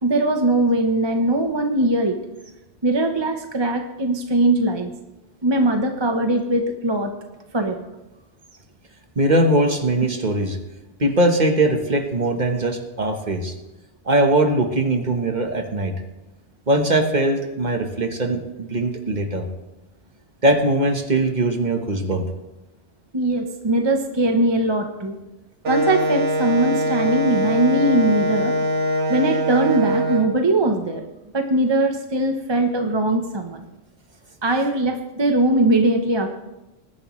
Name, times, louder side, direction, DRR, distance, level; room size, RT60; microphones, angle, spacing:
voice 1, 0.0-2.2 2.8-4.9 5.4-7.1 7.5-7.9 23.1-25.1 25.7-28.5 29.1-31.0 31.3-33.6 34.4-36.3, right 1 dB, 25° right, 4 dB, 0.9 m, -20 dB
voice 2, 9.1-10.6 11.0-13.5 14.0-15.9 16.7-19.5 20.4-22.2, right 1 dB, 40° right, 5 dB, 1.3 m, -20 dB
Wind instrument woodwind instrument, 25.6-30.3, right 1 dB, 90° right, 1.7 m, -22 dB
20.5 x 10.5 x 3.2 m, 0.97 s
omnidirectional pair, 1.2 m